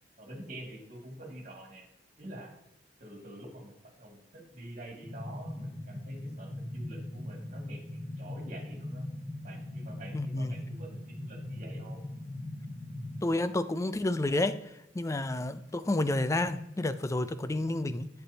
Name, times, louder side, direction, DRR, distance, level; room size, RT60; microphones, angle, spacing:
voice 1, 0.2-1.9 2.2-2.5 3.0-9.1 9.4-12.0, right 1 dB, 45° right, 2.3 m, -46 dB
sound 1, 5.0-13.3, left 1 dB, 75° left, 2.2 m, -40 dB
voice 2, 10.1-10.5 13.2-14.6 14.9-18.1, left 2 dB, 15° left, 0.4 m, -30 dB
8.2 x 7.8 x 2.8 m
head